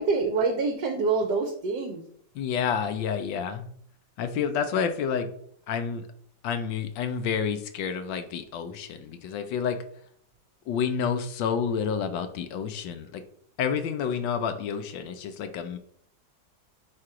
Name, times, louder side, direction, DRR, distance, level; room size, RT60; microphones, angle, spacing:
voice 1, 0.0-2.0, right 4 dB, 65° right, 4 dB, 1.3 m, -26 dB
voice 2, 2.3-3.7 4.2-5.3 5.7-6.1 6.4-9.8 10.7-13.2 13.6-15.8, left 7 dB, 80° left, 8 dB, 1.4 m, -29 dB
4.8 x 4.2 x 4.8 m, 0.63 s
omnidirectional pair, 2.0 m